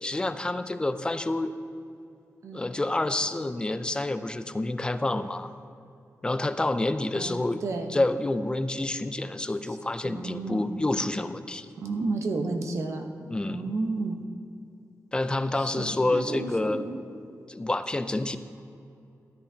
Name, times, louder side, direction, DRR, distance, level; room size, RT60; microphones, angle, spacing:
voice 1, 0.0-1.5 2.5-5.5 6.2-7.6 7.9-11.7 13.3-13.7 15.1-16.8 17.5-18.4, left 2 dB, 15° left, 11 dB, 0.4 m, -28 dB
voice 2, 7.1-7.9 9.7-9.8 10.0-10.7 11.8-13.0 13.5-14.2 15.5-17.0, right 3 dB, 60° right, 3 dB, 1.0 m, -32 dB
13.5 x 12.0 x 2.8 m, 2.6 s
wide cardioid pair, 145°, 6 cm